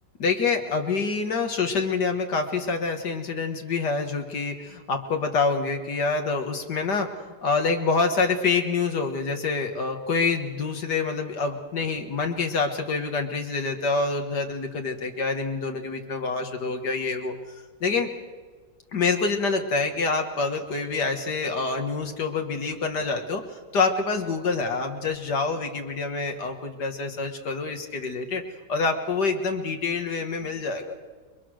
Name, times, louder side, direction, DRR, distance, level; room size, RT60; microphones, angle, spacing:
voice 1, 0.2-18.1 18.9-28.4 28.7-30.9, left 4 dB, 80° left, 4 dB, 2.2 m, -26 dB
30.0 x 22.0 x 6.4 m, 1.4 s
omnidirectional pair, 1.8 m